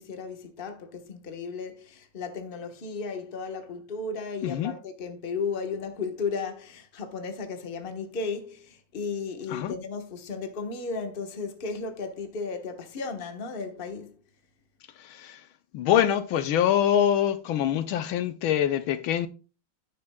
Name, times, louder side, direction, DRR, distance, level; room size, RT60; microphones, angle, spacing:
voice 1, 0.0-14.1, left 4 dB, 30° left, 1.2 m, -34 dB
voice 2, 4.4-4.7 9.5-9.7 15.0-15.4 15.7-19.3, left 10 dB, 75° left, 1.4 m, -24 dB
10.5 x 9.6 x 2.3 m
omnidirectional pair, 2.3 m